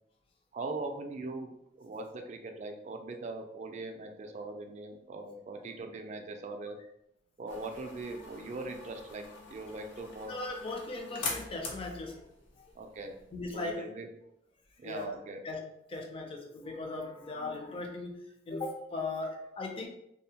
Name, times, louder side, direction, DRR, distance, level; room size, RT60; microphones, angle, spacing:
voice 1, 0.5-6.8 7.4-10.3 12.7-13.2 13.5-14.1 14.8-15.4, right 2 dB, 40° right, 5 dB, 0.3 m, -41 dB
sound 1, 7.5-13.8, left 3 dB, 90° left, 0.6 m, -44 dB
voice 2, 10.3-12.2 12.6-12.7 13.3-13.9 14.8-15.2 15.4-15.6 15.9-18.2 18.5-19.9, left 3 dB, 30° left, 2 dB, 0.4 m, -38 dB
2.7 x 2.0 x 2.7 m, 0.80 s
head